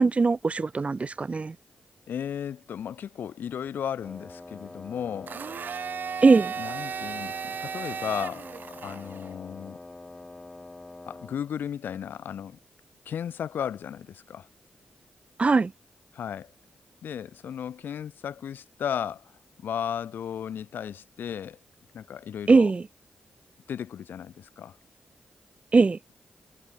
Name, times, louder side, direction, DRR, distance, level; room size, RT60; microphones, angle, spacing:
voice 1, 0.0-1.5 6.2-6.5 15.4-15.7 22.5-22.8 25.7-26.0, right 4 dB, 40° right, 0.6 m, -20 dB
voice 2, 2.1-5.4 6.6-8.5 8.8-9.8 11.1-12.6 13.0-14.5 16.1-16.5 17.0-19.3 19.6-21.6 21.9-22.7 23.7-24.8, left 8 dB, 80° left, 1.5 m, -35 dB
Wind instrument woodwind instrument, 4.0-11.4, left 2 dB, 25° left, 2.0 m, -45 dB
Domestic sounds home sounds, 5.3-9.3, right 7 dB, 70° right, 2.6 m, -35 dB
cardioid pair, 60°, 3 cm